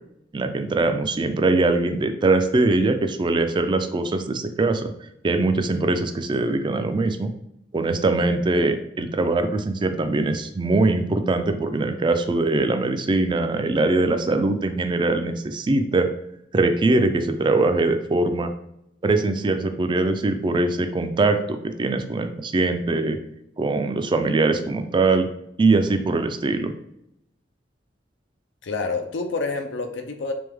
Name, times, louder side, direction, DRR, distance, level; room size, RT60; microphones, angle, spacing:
voice 1, 0.3-4.9 5.2-7.3 7.7-16.1 16.5-18.5 19.0-23.2 23.6-25.3 25.6-26.7, right 2 dB, 25° right, 8 dB, 0.3 m, -22 dB
voice 2, 28.6-30.3, left 3 dB, 80° left, 5 dB, 0.5 m, -28 dB
3.4 x 3.4 x 3.4 m, 0.79 s
head